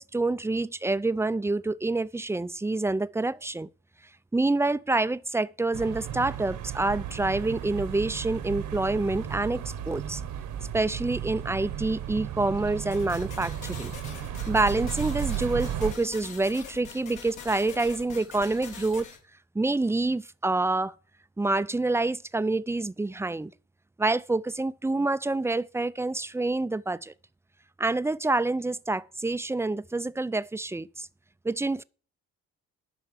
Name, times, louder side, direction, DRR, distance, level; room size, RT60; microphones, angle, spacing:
voice 1, 0.0-3.7 4.3-10.2 10.7-13.9 14.5-19.1 19.5-20.9 21.4-23.5 24.0-27.1 27.8-31.1 31.4-31.8, right 2 dB, 10° right, 0.5 m, -27 dB
sound 1, 5.7-15.9, right 10 dB, 80° right, 1.6 m, -34 dB
sound 2, 12.9-19.2, left 6 dB, 80° left, 3.3 m, -44 dB
12.0 x 4.5 x 7.3 m
cardioid pair, 90°, 30 cm